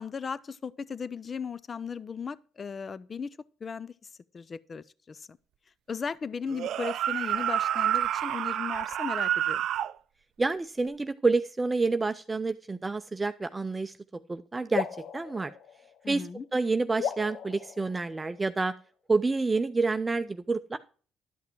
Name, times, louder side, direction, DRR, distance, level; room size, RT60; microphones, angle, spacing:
voice 1, 0.0-3.9 4.3-5.4 5.9-9.6 16.0-16.4, left 6 dB, 40° left, 0.5 m, -37 dB
sound 1, 6.5-9.9, right 11 dB, 70° right, 0.4 m, -28 dB
voice 2, 10.4-13.9 14.3-14.9 15.1-15.5 16.1-18.7 19.1-20.8, right 3 dB, 20° right, 0.6 m, -28 dB
sound 2, 14.7-16.4 17.0-18.7, left 8 dB, 75° left, 0.7 m, -37 dB
12.0 x 5.9 x 4.5 m
cardioid pair, 85°, 0 cm